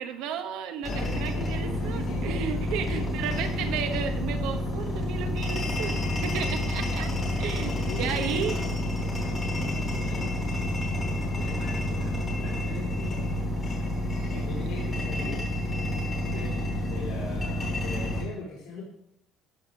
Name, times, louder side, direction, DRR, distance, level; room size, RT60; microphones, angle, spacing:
voice 1, 0.0-7.1 7.4-8.6, right 7 dB, 80° right, 8 dB, 1.1 m, -33 dB
voice 2, 0.8-3.2 7.4-8.7 9.1-9.4 9.9-10.7 11.1-13.3 14.3-15.4 16.2-18.8, left 3 dB, 80° left, -6 dB, 3.6 m, -41 dB
sound 1, 0.8-18.2, left 1 dB, 20° left, 3.6 m, -29 dB
14.0 x 5.0 x 6.5 m, 0.80 s
cardioid pair, 170°, 0 cm